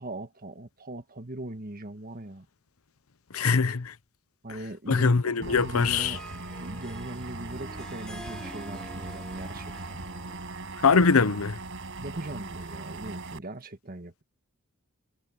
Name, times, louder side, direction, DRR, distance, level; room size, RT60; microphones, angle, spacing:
voice 1, 0.0-2.4 4.4-6.2 6.6-10.0 12.0-14.2, right 1 dB, 45° right, 1.6 m, -40 dB
voice 2, 3.3-3.9 4.9-6.2 10.8-11.6, left 5 dB, 75° left, 0.8 m, -22 dB
Harp, 5.4-10.7, equal, 5° left, 2.2 m, -47 dB
sound 1, 5.4-13.4, right 2 dB, 60° right, 5.6 m, -39 dB
head